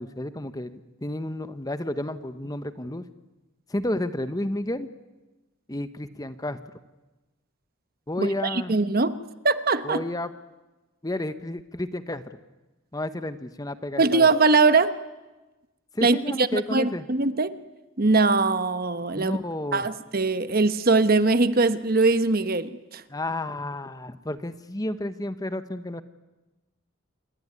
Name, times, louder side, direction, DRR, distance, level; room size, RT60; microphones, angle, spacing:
voice 1, 0.0-3.0 3.7-4.9 5.7-6.6 8.1-8.7 9.8-10.3 11.0-12.4 12.9-14.3 15.9-17.0 19.1-19.9 23.1-26.0, left 1 dB, 15° left, 11 dB, 0.9 m, -31 dB
voice 2, 8.2-10.0 14.0-15.0 16.0-17.6 18.0-19.4 19.7-23.0, right 3 dB, 45° right, 12 dB, 1.1 m, -22 dB
27.5 x 22.0 x 9.6 m, 1.1 s
head